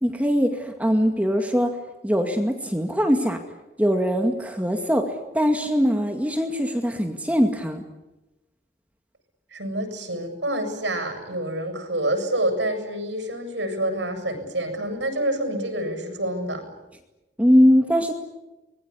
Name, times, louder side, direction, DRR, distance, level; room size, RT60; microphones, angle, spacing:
voice 1, 0.0-1.7 2.0-3.4 3.8-7.8 17.4-18.1, equal, 10° right, 4 dB, 2.1 m, -21 dB
voice 2, 9.5-16.6, right 1 dB, 90° right, 6 dB, 7.8 m, -27 dB
25.0 x 21.5 x 9.8 m, 1.0 s
head